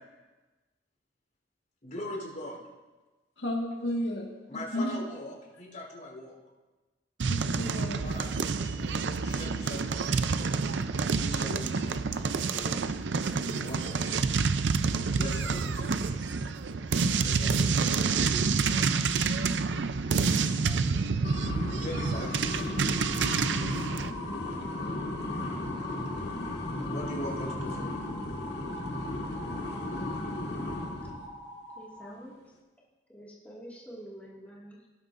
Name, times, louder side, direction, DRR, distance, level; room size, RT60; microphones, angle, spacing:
voice 1, 1.8-2.6 4.5-6.3 8.0-10.2 11.0-12.0 12.5-12.8 13.6-14.2 15.0-15.9 17.2-19.2 20.0-21.1 21.8-22.3 24.5-24.6 26.9-28.0, left 1 dB, 50° left, 3.8 m, -41 dB
voice 2, 3.4-5.0 7.3-8.0, left 1 dB, 90° left, 1.7 m, -33 dB
sound 1, 7.2-24.1, right 4 dB, 80° right, 0.5 m, -28 dB
sound 2, 21.2-31.3, left 2 dB, 65° left, 1.9 m, -35 dB
sound 3, 22.8-32.1, equal, 10° right, 3.8 m, -44 dB
voice 3, 31.8-32.5 33.1-34.9, equal, 10° left, 2.0 m, -47 dB
18.0 x 12.0 x 2.6 m
head